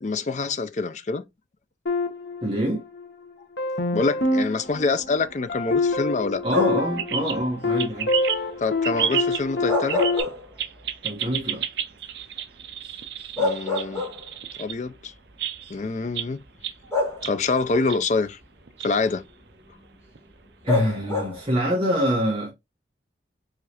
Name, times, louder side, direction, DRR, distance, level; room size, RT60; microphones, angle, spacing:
voice 1, 0.0-1.2 3.9-6.4 8.6-10.0 13.4-14.0 14.6-15.1 15.7-16.4 17.2-18.4 18.8-19.2, left 3 dB, 40° left, 0.4 m, -26 dB
sound 1, 1.9-3.1 3.6-10.2, left 2 dB, 70° left, 0.9 m, -27 dB
voice 2, 2.4-2.8 6.4-8.1 11.0-11.6 20.6-22.5, equal, 30° right, 1.2 m, -25 dB
sound 2, 6.5-7.0 9.5-10.9 11.3-11.4 12.9-13.0 13.4-14.5 15.5-15.6 16.9-17.6 20.7-21.5, left 3 dB, 15° left, 1.4 m, -27 dB
sound 3, 7.0-7.4 7.8-8.5 8.8-9.5 9.9-10.3 10.6-14.7 15.4-15.9 16.1-16.3 16.6-17.3 17.9-18.0 18.7-18.9 20.1-20.2, right 9 dB, 65° right, 0.5 m, -30 dB
4.8 x 3.2 x 2.8 m
head